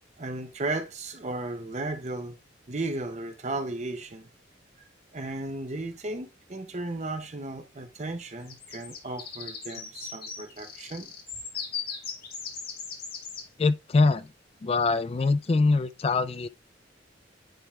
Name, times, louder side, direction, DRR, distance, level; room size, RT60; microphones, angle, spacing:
voice 1, 0.2-2.4 2.7-4.3 5.1-11.1, right 2 dB, 40° right, 0.8 m, -35 dB
sound 1, 8.5-13.4, left 6 dB, 55° left, 2.4 m, -38 dB
voice 2, 13.6-14.3 14.6-16.5, left 3 dB, 30° left, 0.3 m, -23 dB
10.0 x 3.5 x 3.2 m
head